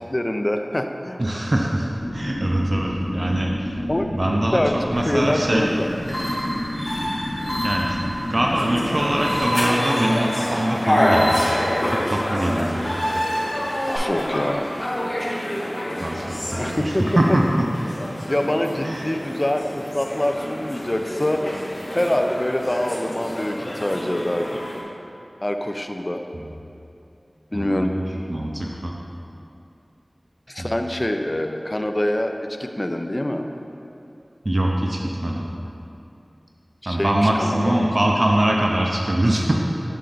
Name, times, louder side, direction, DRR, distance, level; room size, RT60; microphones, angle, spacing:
voice 1, 0.1-1.2 3.9-4.1 4.5-4.7 5.0-5.9 7.0-7.1 13.9-14.7 16.6-17.0 18.3-21.4 21.9-24.6 25.4-26.2 27.5-27.9 30.5-33.5 36.8-37.9, left 1 dB, 30° left, 5 dB, 0.4 m, -25 dB
voice 2, 1.2-3.7 4.1-5.7 7.6-13.0 16.0-17.7 18.8-19.1 26.3-26.5 27.5-28.9 30.6-30.8 34.4-35.5 36.9-39.5, right 1 dB, 50° right, -1 dB, 0.5 m, -23 dB
sound 1, 2.0-9.4, left 1 dB, 75° left, 0.8 m, -30 dB
sound 2, 4.9-14.0, equal, 5° left, 1.4 m, -30 dB
sound 3, 8.5-24.8, equal, 45° left, 0.8 m, -27 dB
6.9 x 4.3 x 3.8 m, 2.7 s
wide cardioid pair, 50°, 0 cm